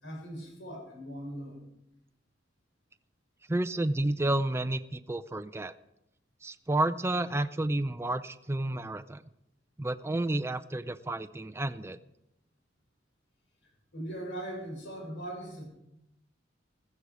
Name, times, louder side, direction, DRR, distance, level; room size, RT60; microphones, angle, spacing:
voice 1, 0.0-1.6 13.9-15.6, right 1 dB, 75° left, 0 dB, 6.8 m, -40 dB
voice 2, 3.5-5.7 6.4-9.2 9.8-12.0, right 1 dB, 15° right, 11 dB, 0.5 m, -31 dB
15.0 x 14.5 x 4.9 m, 0.84 s
head